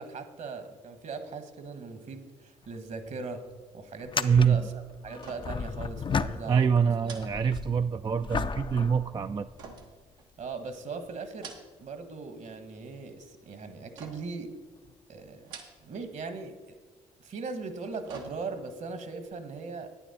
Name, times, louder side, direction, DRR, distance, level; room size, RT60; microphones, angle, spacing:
voice 1, 0.0-3.4 3.7-6.7 10.4-11.5 11.8-14.6 15.1-16.6 17.2-19.9, right 4 dB, 60° right, 9 dB, 1.3 m, -39 dB
sound 1, 2.6-2.8 3.1-3.2 4.0-6.8 7.2-9.8 10.5-10.6 14.8-14.9 16.3-16.4, left 5 dB, 35° left, 0.5 m, -34 dB
voice 2, 4.2-4.7 6.5-9.5, right 6 dB, 30° right, 9 dB, 0.3 m, -25 dB
sound 2, 5.2-5.7 6.0-6.1 7.0-8.1 9.6-10.7 11.2-12.0 12.3-12.9 14.0-14.5 15.3-16.1 16.4-16.5 17.6-18.8 19.2-19.3, right 5 dB, 90° right, 1.2 m, -48 dB
10.0 x 9.3 x 4.2 m, 1.3 s
supercardioid pair, 55°, 15 cm